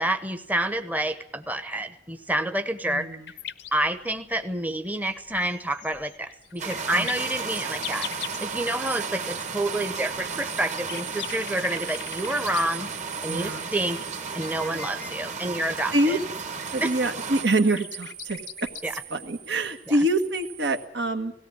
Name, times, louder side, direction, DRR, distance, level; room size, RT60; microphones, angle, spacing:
voice 1, 0.0-3.1 3.7-12.9 13.2-14.0 14.3-16.2 16.8-16.9 18.8-18.9 19.9-20.0, right 1 dB, 10° right, 9 dB, 0.9 m, -28 dB
voice 2, 2.9-3.3 6.9-7.1 13.3-13.7 14.6-14.9 15.9-16.2 16.7-18.7 19.1-21.3, right 1 dB, 75° right, 7 dB, 1.6 m, -26 dB
sound 1, 3.3-8.5 8.8-8.9 9.6-12.6 13.1-15.2 15.5-18.8 20.0-20.1, left 11 dB, 75° left, 0.8 m, -41 dB
sound 2, 6.4-15.7 16.5-20.9, right 10 dB, 60° right, 2.2 m, -43 dB
sound 3, 6.6-17.4, right 5 dB, 40° right, 1.7 m, -34 dB
18.0 x 17.0 x 9.6 m, 0.71 s
head